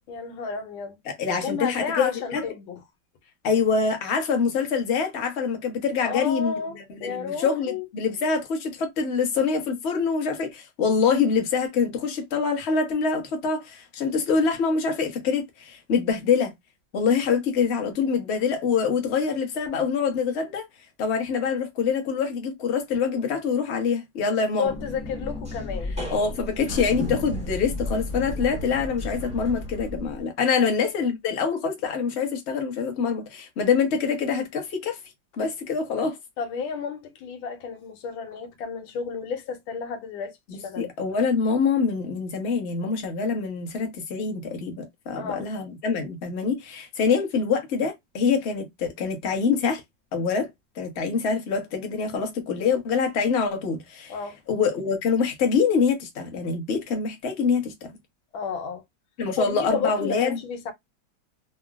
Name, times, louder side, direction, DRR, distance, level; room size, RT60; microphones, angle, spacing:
voice 1, 0.1-1.0 1.3-2.8 6.0-7.9 24.6-26.0 30.6-30.7 36.4-40.4 40.6-40.9 45.1-45.5 54.1-54.4 58.3-58.8 59.4-60.7, left 6 dB, 90° left, 1.6 m, -32 dB
voice 2, 1.2-2.5 3.4-16.5 16.9-20.7 21.0-24.7 26.1-35.0 35.4-36.2 40.5-49.8 50.1-50.5 50.8-54.1 54.5-57.7 59.2-60.4, left 5 dB, 45° left, 1.0 m, -25 dB
sound 1, 24.6-30.2, left 1 dB, 5° right, 0.7 m, -33 dB
3.9 x 2.1 x 2.3 m
omnidirectional pair, 2.1 m